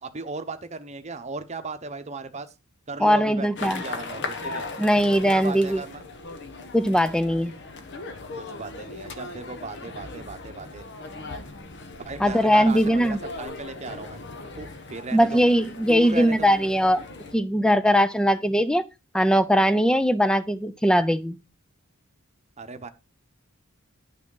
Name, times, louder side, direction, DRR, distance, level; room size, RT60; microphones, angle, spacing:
voice 1, 0.0-2.5 2.9-4.7 5.3-6.0 8.4-10.8 12.0-14.2 14.6-15.4 15.9-16.5 22.6-22.9, right 3 dB, 30° right, 0.9 m, -36 dB
voice 2, 3.0-3.8 4.8-5.8 6.7-7.5 12.2-13.2 15.1-17.0 17.3-18.8 19.1-21.4, equal, 5° left, 0.5 m, -20 dB
sound 1, 3.6-17.3, left 3 dB, 55° left, 1.1 m, -38 dB
11.0 x 6.2 x 3.9 m
head